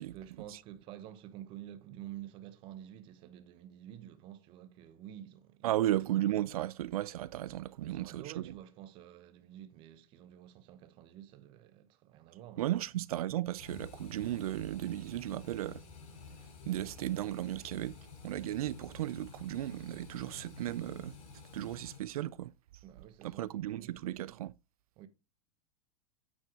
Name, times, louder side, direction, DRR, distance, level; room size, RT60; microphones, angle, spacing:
voice 1, 0.0-6.0 7.9-12.8 21.6-21.8 22.8-24.0 25.0-25.1, right 12 dB, 30° right, 1.0 m, -50 dB
voice 2, 5.6-8.2 12.6-15.8 16.6-18.0 18.2-21.1 21.5-22.5 23.2-24.5, right 14 dB, 90° right, 0.6 m, -35 dB
sound 1, 13.6-22.0, left 4 dB, 35° left, 5.4 m, -51 dB
9.0 x 8.9 x 2.9 m
supercardioid pair, 170°, 18 cm